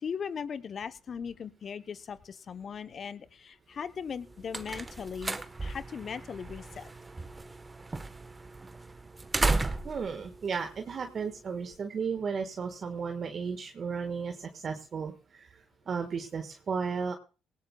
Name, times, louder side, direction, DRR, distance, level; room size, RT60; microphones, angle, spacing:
voice 1, 0.0-6.9, left 6 dB, 50° left, 13 dB, 0.9 m, -39 dB
sound 1, 4.0-11.5, right 3 dB, 25° right, 1.2 m, -35 dB
voice 2, 9.8-17.1, right 5 dB, 50° right, 5 dB, 1.6 m, -34 dB
18.5 x 18.0 x 2.3 m, 0.34 s
hypercardioid pair, 55°, 0 cm